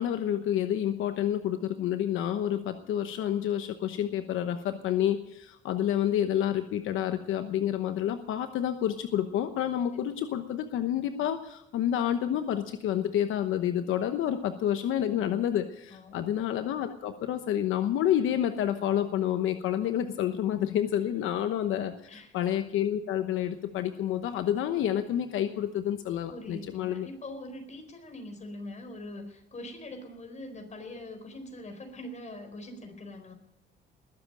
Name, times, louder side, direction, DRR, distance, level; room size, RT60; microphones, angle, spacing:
voice 1, 0.0-27.1, left 10 dB, 85° left, 8 dB, 1.0 m, -29 dB
voice 2, 15.9-16.3 21.2-21.3 22.1-22.4 26.3-33.3, left 1 dB, 35° left, 6 dB, 4.3 m, -43 dB
20.5 x 7.8 x 8.9 m, 0.80 s
cardioid pair, 90°, 20 cm